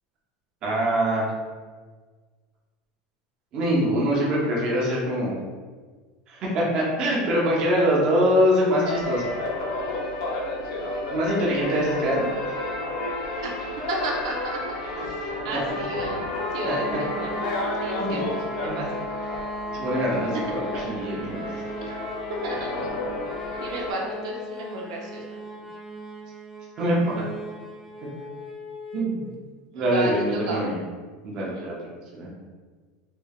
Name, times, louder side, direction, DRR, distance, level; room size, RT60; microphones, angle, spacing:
voice 1, 0.6-1.3 3.5-5.4 6.3-9.3 11.1-12.3 16.7-16.8 18.0-18.2 18.6-18.8 19.7-21.5 26.8-27.1 28.9-29.2 29.7-30.8 31.2-32.3, equal, 30° right, -4 dB, 0.7 m, -24 dB
sound 1, 8.8-23.9, left 2 dB, 55° left, 0.6 m, -31 dB
voice 2, 13.9-15.1 15.4-17.4 17.8-18.9 21.8-22.0 22.3-22.7 23.6-25.4 29.7-30.7 31.3-31.7, right 2 dB, 85° right, -1 dB, 0.7 m, -33 dB
sound 2, 16.4-29.2, left 1 dB, 5° right, 0.3 m, -37 dB
3.4 x 3.3 x 2.3 m, 1.4 s
supercardioid pair, 175°, 3 cm